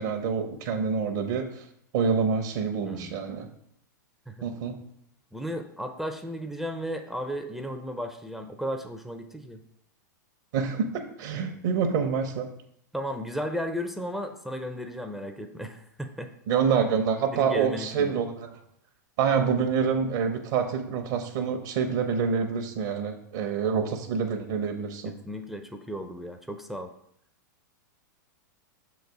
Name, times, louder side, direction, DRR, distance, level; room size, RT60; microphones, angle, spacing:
voice 1, 0.0-1.7 1.9-3.5 4.4-4.8 10.5-12.5 16.5-18.6 19.2-25.1, right 6 dB, 60° right, 5 dB, 0.8 m, -27 dB
voice 2, 2.8-3.2 4.3-4.5 5.3-9.6 12.9-16.3 17.3-18.1 25.0-26.9, equal, ahead, 6 dB, 0.5 m, -34 dB
6.4 x 4.0 x 4.6 m, 0.72 s
hypercardioid pair, 105°, 10 cm